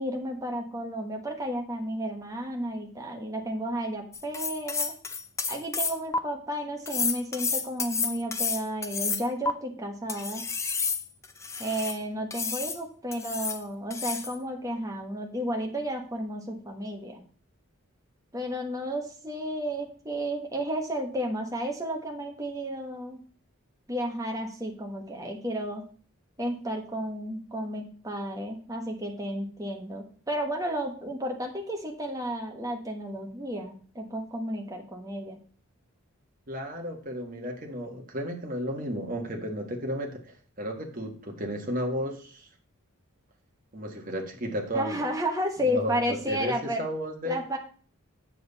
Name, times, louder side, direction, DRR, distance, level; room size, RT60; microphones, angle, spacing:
voice 1, 0.0-4.9 5.5-10.5 11.6-17.2 18.3-23.2 23.9-25.9 26.4-35.4 44.7-46.8 47.2-47.6, equal, 15° right, 2 dB, 1.2 m, -32 dB
sound 1, 4.1-6.2 6.9-9.5 10.1-12.0 12.3-12.8 13.1-13.6 13.9-14.4, left 4 dB, 15° left, 0.4 m, -30 dB
voice 2, 36.5-42.5 43.7-45.0 45.7-47.4, equal, 40° right, 2 dB, 1.5 m, -33 dB
7.6 x 7.2 x 4.1 m, 0.43 s
head